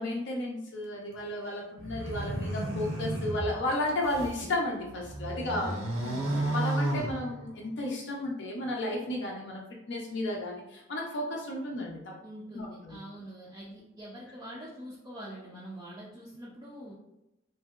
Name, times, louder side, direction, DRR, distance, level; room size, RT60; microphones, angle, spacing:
voice 1, 0.0-5.7 6.5-9.6 9.9-12.1 12.5-13.0, left 1 dB, 60° left, -2 dB, 0.5 m, -33 dB
sound 1, 1.8-4.4 4.9-7.7, right 1 dB, 75° right, 0.7 m, -33 dB
voice 2, 5.5-6.5 12.2-16.9, right 1 dB, 20° right, -6 dB, 0.4 m, -44 dB
2.8 x 2.6 x 2.3 m, 0.92 s
head